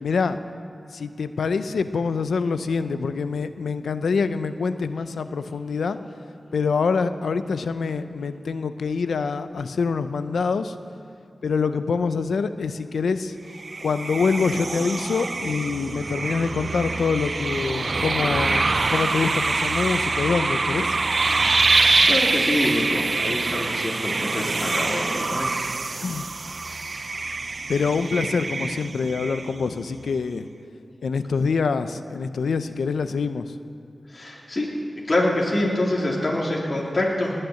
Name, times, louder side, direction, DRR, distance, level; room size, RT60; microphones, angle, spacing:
voice 1, 0.0-0.4 0.9-6.0 6.5-10.7 11.4-13.4 13.8-21.0 26.0-26.3 27.7-30.5 31.0-33.5, left 5 dB, 90° left, 11 dB, 0.6 m, -25 dB
sound 1, 13.5-29.8, right 3 dB, 55° right, 0.4 m, -25 dB
voice 2, 22.0-25.7 34.1-34.7 35.1-37.3, left 1 dB, 45° left, -4 dB, 3.2 m, -25 dB
19.5 x 6.7 x 8.5 m, 2.7 s
cardioid pair, 40°, 0 cm